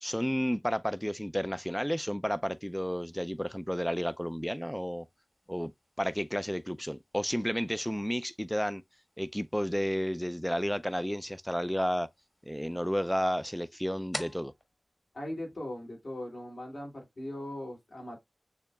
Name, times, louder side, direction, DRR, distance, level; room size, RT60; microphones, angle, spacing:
voice 1, 0.0-5.1 5.5-5.7 6.0-8.8 9.2-12.1 12.5-14.5, equal, 5° left, 0.4 m, -31 dB
sound 1, 2.4-16.1, left 1 dB, 30° left, 1.3 m, -52 dB
voice 2, 15.1-18.2, left 1 dB, 70° left, 2.6 m, -39 dB
6.7 x 2.8 x 2.3 m
wide cardioid pair, 55°, 0 cm